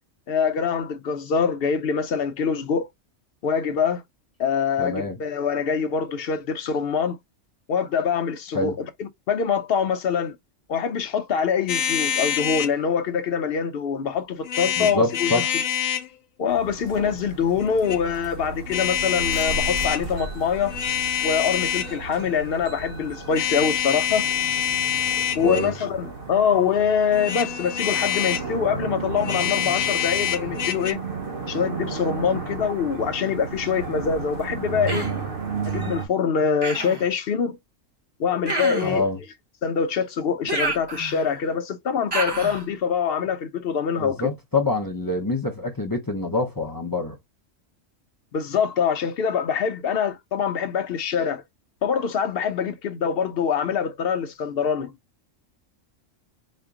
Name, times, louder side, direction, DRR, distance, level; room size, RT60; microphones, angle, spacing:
voice 1, 0.3-2.9 3.4-4.0 4.4-7.2 7.7-10.4 10.7-15.4 16.4-20.7 21.2-24.3 25.3-31.0 31.5-35.1 35.6-37.6 38.2-39.0 39.6-44.3 48.3-51.4 51.8-54.9, left 6 dB, 55° left, 0.8 m, -24 dB
voice 2, 4.8-5.2 8.5-8.7 14.8-15.5 25.4-25.7 38.8-39.2 44.0-47.2, left 2 dB, 25° left, 0.4 m, -25 dB
sound 1, 11.7-12.8 14.4-16.1 17.6-18.0 18.7-20.0 20.6-22.0 23.3-25.8 27.1-28.5 29.2-30.9, left 10 dB, 85° left, 1.0 m, -26 dB
sound 2, 16.5-36.1, right 4 dB, 50° right, 0.9 m, -34 dB
Human voice, 34.9-35.2 36.6-37.1 38.4-39.0 40.5-41.4 42.1-42.6, right 2 dB, 25° right, 0.7 m, -28 dB
4.3 x 2.0 x 3.6 m
omnidirectional pair, 1.3 m